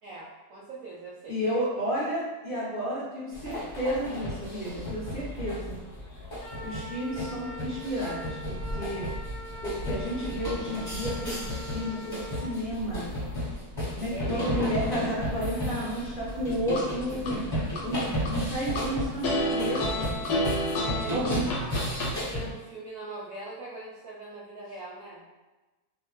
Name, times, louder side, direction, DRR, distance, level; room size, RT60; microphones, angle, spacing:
voice 1, 0.0-1.5 14.1-14.8 21.0-21.5 21.9-25.2, right 2 dB, 70° right, -5 dB, 0.9 m, -41 dB
voice 2, 1.3-5.8 6.6-9.0 9.6-13.0 13.9-17.4 17.8-18.0 18.3-20.2 21.1-21.4, equal, 45° left, -11 dB, 0.8 m, -32 dB
sound 1, 3.3-22.5, left 1 dB, 15° left, 0.9 m, -34 dB
Wind instrument woodwind instrument, 6.4-12.5, right 1 dB, 90° left, 0.4 m, -43 dB
sound 2, 16.3-17.3 17.8-18.8 19.2-22.1, left 1 dB, 70° left, 1.2 m, -29 dB
2.7 x 2.2 x 3.0 m, 1.2 s
omnidirectional pair, 1.8 m